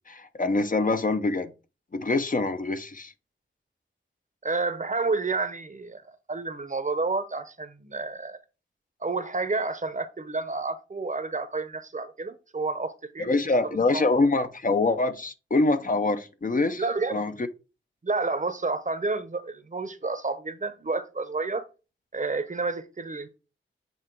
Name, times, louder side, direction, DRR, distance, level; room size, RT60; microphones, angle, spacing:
voice 1, 0.1-1.5 1.9-3.1 13.2-16.8 17.1-17.3, left 3 dB, 40° left, 0.7 m, -25 dB
voice 2, 4.4-8.4 9.0-14.1 16.8-17.2 18.0-21.7 22.1-23.4, right 3 dB, 35° right, 0.8 m, -30 dB
8.0 x 2.9 x 4.5 m
wide cardioid pair, 75°, 21 cm